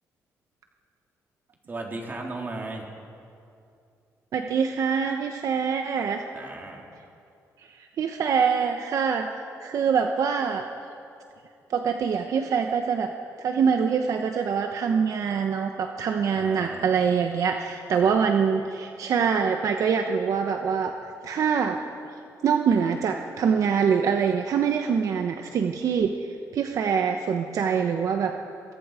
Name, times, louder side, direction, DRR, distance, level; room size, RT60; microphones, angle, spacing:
voice 1, 1.7-2.9 6.3-6.8 16.3-16.9 18.0-18.2, right 2 dB, 30° right, 0 dB, 3.8 m, -36 dB
voice 2, 4.3-6.2 8.0-9.3 9.6-10.6 11.7-13.1 13.4-20.9 21.2-21.8 22.4-26.1 26.5-28.3, right 6 dB, 65° right, 5 dB, 1.1 m, -24 dB
23.0 x 23.0 x 5.1 m, 2.6 s
cardioid pair, 100°, 6 cm